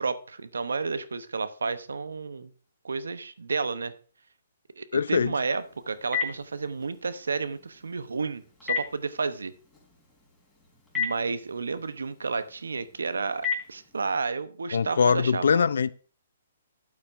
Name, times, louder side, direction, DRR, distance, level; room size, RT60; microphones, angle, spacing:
voice 1, 0.0-2.5 2.8-3.9 4.8-9.5 10.9-15.6, right 4 dB, 85° right, 0.8 m, -31 dB
voice 2, 4.9-5.3 14.7-15.9, left 6 dB, 75° left, 0.5 m, -22 dB
Telephone, 5.4-14.3, left 6 dB, 5° left, 3.8 m, -37 dB
12.5 x 8.6 x 2.6 m
hypercardioid pair, 140°, 0 cm